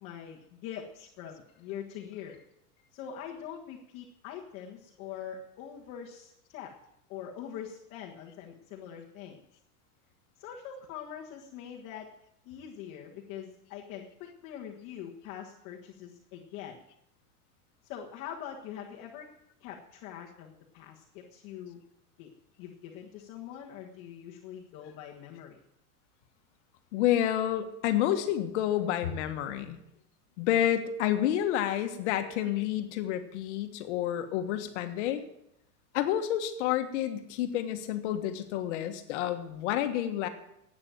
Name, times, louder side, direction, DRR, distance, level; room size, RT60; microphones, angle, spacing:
voice 1, 0.0-2.4 2.9-6.7 7.1-9.4 10.4-12.1 12.4-16.8 17.8-19.3 19.6-21.8 22.2-22.3 22.6-25.6, left 9 dB, 35° left, -2 dB, 1.6 m, -43 dB
voice 2, 26.9-29.8 30.4-35.3 35.9-40.3, left 11 dB, 50° left, 7 dB, 1.6 m, -29 dB
12.0 x 8.9 x 8.9 m, 0.81 s
supercardioid pair, 170°, 45 cm